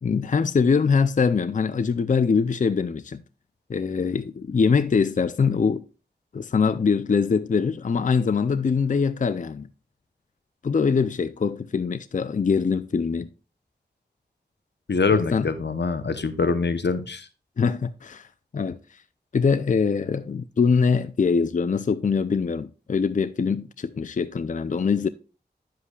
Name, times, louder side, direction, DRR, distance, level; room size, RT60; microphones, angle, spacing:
voice 1, 0.0-3.2 3.7-5.8 6.3-9.7 10.6-13.3 15.1-15.5 17.6-18.3 18.5-18.8 19.3-25.1, left 5 dB, 50° left, 0.4 m, -23 dB
voice 2, 14.9-17.3, left 4 dB, 85° left, 0.8 m, -24 dB
9.9 x 7.6 x 2.3 m
wide cardioid pair, 50°, 17 cm